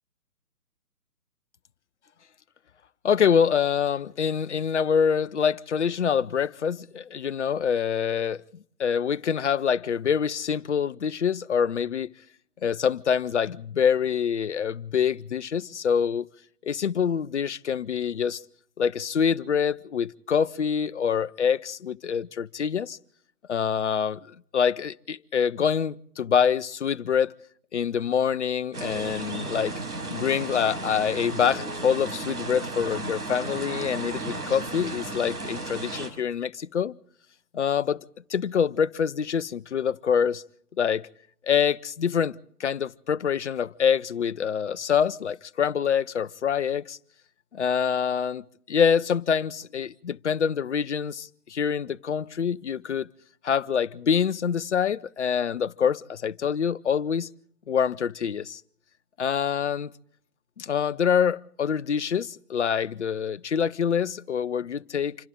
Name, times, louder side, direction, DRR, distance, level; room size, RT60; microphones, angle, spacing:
voice 1, 3.0-8.4 8.8-12.1 12.6-16.3 16.6-18.4 18.8-23.0 23.5-27.4 27.7-29.8 30.1-36.9 37.5-38.0 38.3-40.4 40.8-41.1 41.4-47.0 47.5-53.1 53.4-57.3 57.7-58.6 59.2-59.9 60.6-65.2, left 7 dB, 50° left, 0.8 m, -25 dB
sound 1, 28.7-36.1, right 2 dB, 75° right, 5.5 m, -34 dB
27.5 x 25.5 x 3.7 m
figure-of-eight pair, 140°, 46 cm